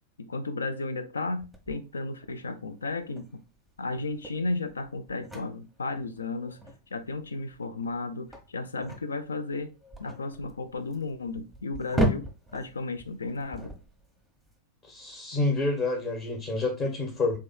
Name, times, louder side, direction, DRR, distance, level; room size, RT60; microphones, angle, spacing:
voice 1, 0.2-3.4 3.8-6.6 6.9-9.7 10.0-12.3 12.5-13.7, left 3 dB, 75° left, 0.5 m, -34 dB
sound 1, 1.4-14.5, right 1 dB, ahead, 1.2 m, -36 dB
voice 2, 14.9-17.4, left 2 dB, 30° left, 1.4 m, -28 dB
3.6 x 3.1 x 4.3 m
figure-of-eight pair, 90°, 0 cm